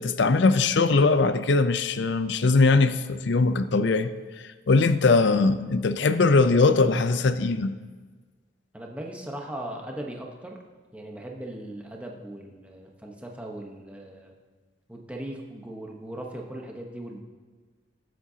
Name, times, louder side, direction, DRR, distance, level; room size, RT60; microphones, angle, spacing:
voice 1, 0.0-4.1 4.7-7.8, left 3 dB, 65° left, 12 dB, 0.5 m, -21 dB
voice 2, 8.7-10.6 10.9-14.3 14.9-17.2, right 1 dB, 5° right, 0 dB, 1.0 m, -38 dB
21.0 x 7.6 x 2.8 m, 1.4 s
head